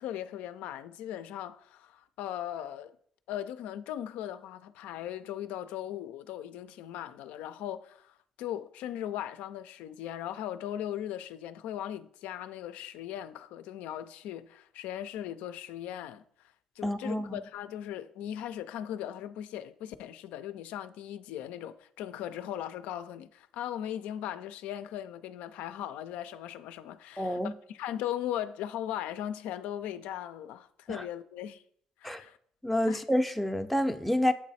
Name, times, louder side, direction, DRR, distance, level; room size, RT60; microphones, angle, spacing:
voice 1, 0.0-3.0 3.3-16.2 16.8-31.6 32.0-32.4 32.9-33.0, left 11 dB, 80° left, 0.3 m, -38 dB
voice 2, 16.8-17.4 27.2-27.5 30.9-31.0 32.0-32.2 32.6-34.3, left 1 dB, ahead, 0.5 m, -28 dB
8.1 x 3.1 x 4.1 m
supercardioid pair, 65°, 2 cm